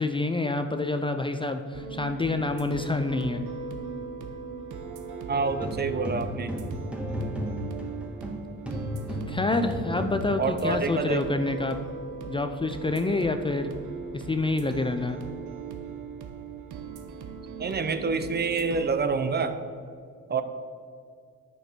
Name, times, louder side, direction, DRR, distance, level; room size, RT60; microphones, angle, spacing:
voice 1, 0.0-3.5 9.3-11.8 12.3-13.7 14.1-15.2, left 3 dB, 15° left, 6 dB, 0.4 m, -27 dB
sound 1, 1.7-18.9, right 5 dB, 80° right, 0.8 m, -39 dB
sound 2, 5.3-8.4 8.7-10.3, equal, 5° right, 1.5 m, -33 dB
voice 2, 5.3-6.5 10.4-11.2 17.6-19.6 20.3-20.4, right 4 dB, 35° right, 10 dB, 0.6 m, -27 dB
8.1 x 6.2 x 4.4 m, 2.3 s
cardioid pair, 90°, 30 cm